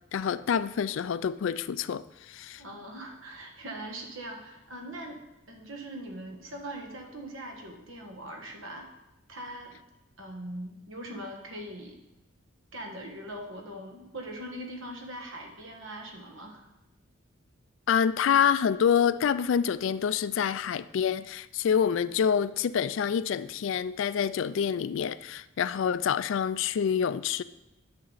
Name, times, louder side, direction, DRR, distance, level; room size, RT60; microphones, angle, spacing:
voice 1, 0.1-2.6 17.9-27.4, left 7 dB, 70° left, 0.3 m, -27 dB
voice 2, 2.6-5.2 5.5-8.9 9.3-9.8 10.2-12.0 12.7-16.6, right 1 dB, 75° right, 1.5 m, -41 dB
10.5 x 6.5 x 4.0 m
head